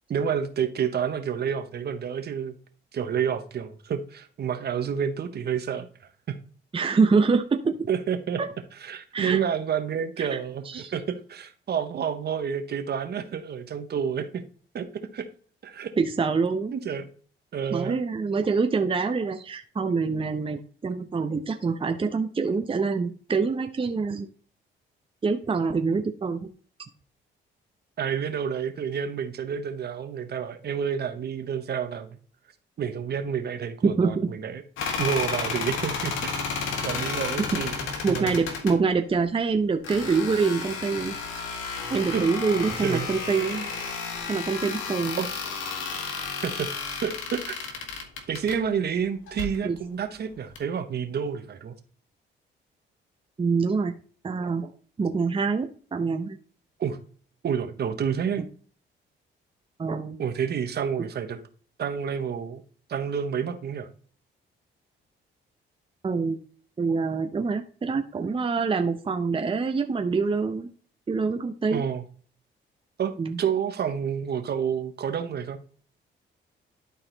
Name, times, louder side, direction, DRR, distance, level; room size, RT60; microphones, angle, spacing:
voice 1, 0.1-2.6 2.9-5.9 6.3-6.4 7.9-8.4 8.8-14.4 14.7-14.9 15.1-15.3 15.6-15.9 16.7-17.1 17.5-18.0 28.0-32.2 32.8-34.6 35.0-36.5 36.8-38.3 42.1-42.3 42.8-43.1 45.1-45.3 46.4-47.9 48.3-51.7 56.8-57.0 57.4-58.4 60.2-61.4 61.8-62.6 62.9-63.9 71.7-72.0 73.0-75.6, right 7 dB, 55° right, 8 dB, 1.2 m, -29 dB
voice 2, 6.7-7.8 8.4-8.5 9.1-9.4 10.2-10.4 10.7-10.9 16.0-16.7 17.7-24.3 25.2-26.5 33.8-34.1 38.0-41.1 41.9-43.7 44.3-45.2 49.6-49.8 53.4-53.9 54.2-54.7 55.0-56.4 58.4-58.5 59.8-60.2 66.0-66.4 66.8-70.7 71.1-71.8 73.2-73.4, right 4 dB, 25° right, 6 dB, 0.8 m, -25 dB
sound 1, 34.8-38.8 39.8-48.6 49.3-49.6 50.6-50.7, left 5 dB, 85° left, 1.6 m, -32 dB
11.5 x 4.1 x 4.0 m, 0.43 s
cardioid pair, 90°, 20 cm